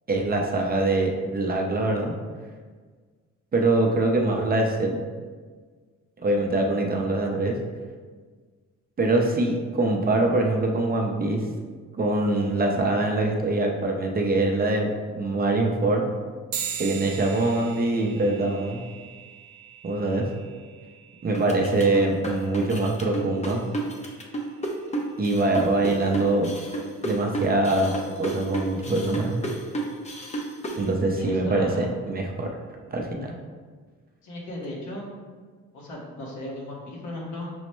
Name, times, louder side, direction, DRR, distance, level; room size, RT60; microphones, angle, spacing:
voice 1, 0.1-2.1 3.5-5.0 6.2-7.6 9.0-11.4 12.0-16.1 16.8-18.9 19.8-20.3 21.2-23.6 25.2-26.6 27.0-27.9 28.2-29.4 30.8-32.5 32.9-33.3, right 2 dB, 30° right, 1 dB, 0.5 m, -24 dB
sound 1, 16.5-26.3, right 8 dB, 75° right, 0.5 m, -41 dB
sound 2, 21.3-30.8, right 2 dB, 25° left, 0.6 m, -31 dB
voice 2, 31.1-31.9 34.2-35.0 35.7-37.5, left 1 dB, 70° left, -3 dB, 1.2 m, -35 dB
6.1 x 2.1 x 3.0 m, 1.5 s
cardioid pair, 90°, 30 cm